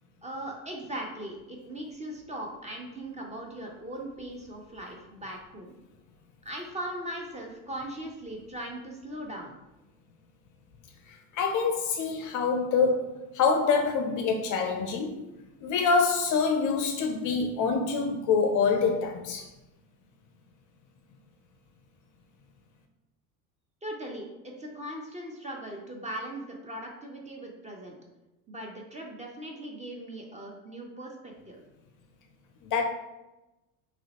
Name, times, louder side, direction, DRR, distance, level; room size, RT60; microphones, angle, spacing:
voice 1, 0.2-5.7 6.4-9.6 23.8-28.0 28.5-31.6, right 1 dB, 15° right, 0 dB, 0.6 m, -39 dB
voice 2, 11.1-15.3 15.6-19.4 32.7-32.8, left 5 dB, 45° left, 4 dB, 0.5 m, -26 dB
3.0 x 2.7 x 2.9 m, 1.0 s
hypercardioid pair, 85°, 46 cm